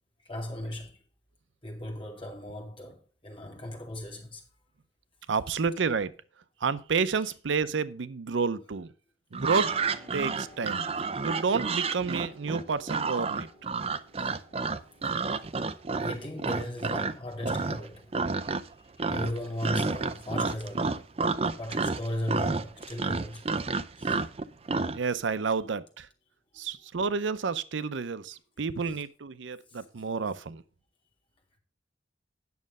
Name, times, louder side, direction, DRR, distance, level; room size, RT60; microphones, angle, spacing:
voice 1, 0.2-1.0 1.6-4.4 14.1-14.3 15.9-18.1 19.1-21.0 21.6-23.5 24.0-24.2 29.7-29.8, left 1 dB, 30° left, 2.5 m, -36 dB
voice 2, 5.3-6.1 6.6-8.9 9.3-9.7 10.1-10.8 11.2-13.5 24.9-26.1 26.6-30.6, right 5 dB, 85° right, 0.6 m, -30 dB
sound 1, 9.3-17.1 17.4-17.9 18.1-18.7 19.0-25.0, right 4 dB, 30° right, 0.5 m, -30 dB
sound 2, 9.5-23.6, equal, 10° left, 3.0 m, -57 dB
9.5 x 6.4 x 5.3 m
head